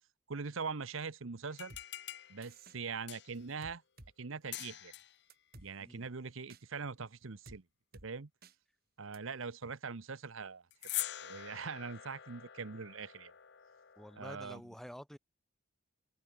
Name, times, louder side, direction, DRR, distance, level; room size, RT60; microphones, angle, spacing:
voice 1, 0.3-1.7 2.3-3.8 4.2-4.9 5.6-7.6 8.0-8.3 9.0-10.6 11.2-13.3 14.2-14.6, right 5 dB, 75° right, 0.9 m, -42 dB
sound 1, 1.5-3.5 4.5-5.2 10.7-14.3, left 14 dB, 55° left, 0.7 m, -45 dB
sound 2, 1.7-1.8 2.4-2.8 3.6-4.1 4.6-4.7 5.3-5.7 6.5-6.6 7.4-7.6 7.9-8.1 8.4-8.5 9.1-9.2, right 2 dB, 45° right, 3.5 m, -54 dB
voice 2, 5.8-6.1 14.0-15.2, equal, ahead, 1.1 m, -49 dB
open air
head